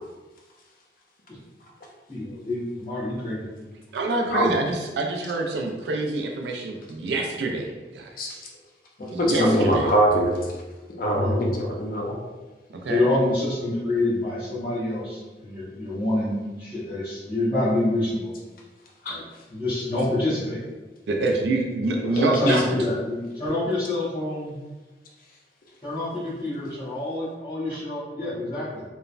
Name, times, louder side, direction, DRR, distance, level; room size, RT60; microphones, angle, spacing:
voice 1, 2.1-3.5 9.0-9.6 11.1-11.5 12.9-18.3 19.1-19.2 19.5-20.6 22.2-24.6 25.8-28.8, left 2 dB, 30° left, -14 dB, 0.9 m, -27 dB
voice 2, 3.9-8.5 9.1-9.9 12.8-13.0 21.1-22.6, right 2 dB, 70° right, 2 dB, 0.3 m, -26 dB
voice 3, 9.0-10.5 10.9-12.2 19.0-19.2 22.0-22.8, equal, 50° left, -1 dB, 0.5 m, -23 dB
3.1 x 2.1 x 2.4 m, 1.2 s
head